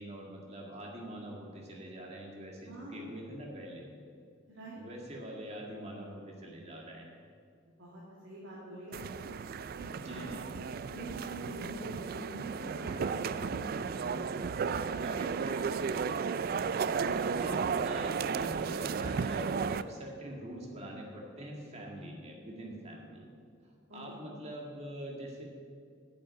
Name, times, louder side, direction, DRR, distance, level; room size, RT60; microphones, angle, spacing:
voice 1, 0.0-3.9 4.8-7.2 9.9-10.4 15.0-16.6 17.0-23.3 23.9-25.4, right 1 dB, 35° right, -1 dB, 1.9 m, -44 dB
voice 2, 2.7-3.1 4.5-4.8 7.8-9.3 9.7-10.5 10.9-14.8 23.9-24.0, right 1 dB, 80° right, -7 dB, 2.4 m, -46 dB
sound 1, 8.9-19.8, right 5 dB, 50° right, 0.3 m, -34 dB
8.7 x 7.9 x 8.7 m, 2.3 s
head